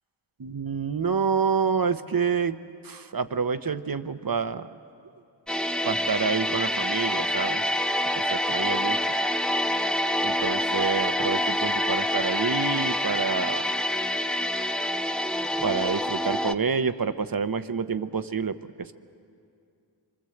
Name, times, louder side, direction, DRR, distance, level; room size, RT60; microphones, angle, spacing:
voice 1, 0.4-2.6 2.8-4.8 5.8-7.6 8.2-9.2 10.2-13.7 15.6-18.9, right 5 dB, 50° right, 11 dB, 1.0 m, -28 dB
sound 1, 5.5-16.5, left 1 dB, ahead, 0.8 m, -26 dB
25.5 x 24.0 x 7.9 m, 2.5 s
cardioid pair, 45°, 46 cm